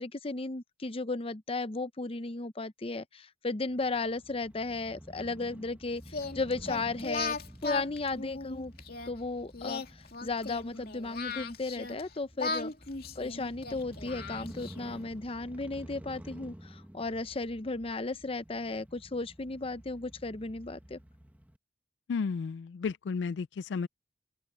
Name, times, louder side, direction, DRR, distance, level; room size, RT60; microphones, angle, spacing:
voice 1, 0.0-7.4 7.6-8.7 9.1-12.7 13.2-21.0, left 3 dB, 30° left, 0.7 m, -35 dB
Crow / Motorcycle, 3.7-21.6, equal, 10° right, 1.1 m, -51 dB
Singing, 6.1-9.1 9.5-12.0 12.4-15.0, left 4 dB, 55° left, 2.4 m, -37 dB
voice 2, 22.1-23.9, left 5 dB, 75° left, 0.4 m, -33 dB
open air
head